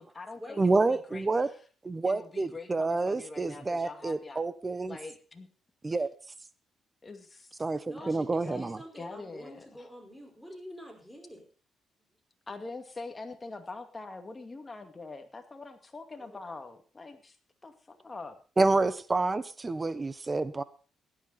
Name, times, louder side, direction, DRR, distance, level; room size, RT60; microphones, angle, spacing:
voice 1, 0.0-1.5 2.0-4.4 4.9-5.5 7.0-7.6 8.0-9.9 12.5-17.4 17.6-18.4, left 3 dB, 25° left, 6 dB, 2.3 m, -44 dB
voice 2, 0.6-1.5 1.8-5.0 5.8-6.1 7.6-8.8 18.6-20.6, right 3 dB, 25° right, 15 dB, 1.1 m, -28 dB
voice 3, 7.9-11.4 16.2-16.5, equal, ahead, 3 dB, 4.9 m, -47 dB
16.5 x 11.0 x 4.2 m, 0.37 s
cardioid pair, 90°, 0 cm